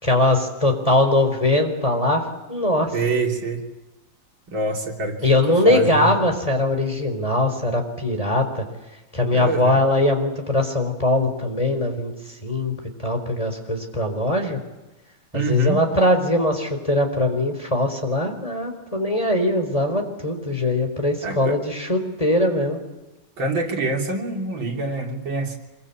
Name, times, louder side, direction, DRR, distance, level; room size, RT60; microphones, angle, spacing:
voice 1, 0.0-2.2 2.5-2.9 5.2-8.6 9.1-12.1 12.4-12.8 13.0-14.6 15.3-22.8, left 1 dB, 15° left, 5 dB, 4.4 m, -21 dB
voice 2, 2.9-3.6 4.5-6.1 9.3-9.8 15.3-15.8 21.2-21.6 23.4-25.6, right 2 dB, 80° right, 1 dB, 4.0 m, -25 dB
26.0 x 23.5 x 8.6 m, 1.0 s
omnidirectional pair, 2.1 m